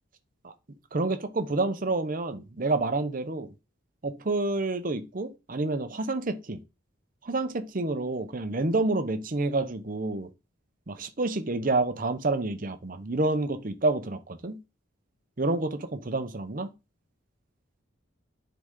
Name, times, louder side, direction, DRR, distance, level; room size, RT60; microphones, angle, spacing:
voice 1, 0.9-3.5 4.0-6.6 7.2-10.3 10.9-14.6 15.4-16.7, right 2 dB, 40° right, 0.8 m, -28 dB
9.6 x 4.0 x 3.7 m
head